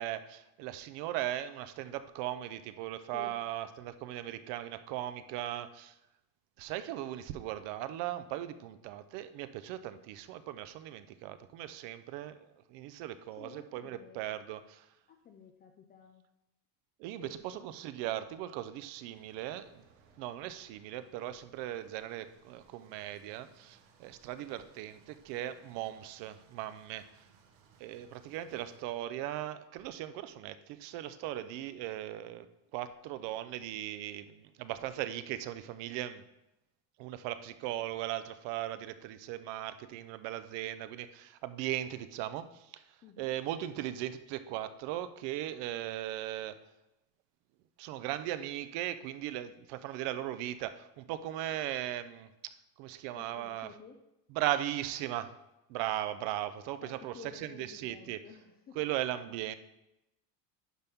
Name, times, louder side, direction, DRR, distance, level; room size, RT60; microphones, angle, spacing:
voice 1, 0.0-6.0 6.6-14.9 17.0-19.8 20.2-27.3 27.8-32.5 32.7-36.2 37.0-46.6 47.8-53.7 54.3-55.3 55.7-58.2 58.7-59.5, right 13 dB, 60° right, 12 dB, 0.7 m, -38 dB
voice 2, 13.4-14.3 15.1-16.2 17.2-17.7 43.0-43.3 53.2-54.0 56.8-58.8, left 6 dB, 25° left, 4 dB, 0.3 m, -52 dB
sound 1, 18.9-28.8, right 5 dB, 80° right, 1.3 m, -65 dB
10.5 x 5.4 x 3.6 m, 0.91 s
cardioid pair, 135°, 48 cm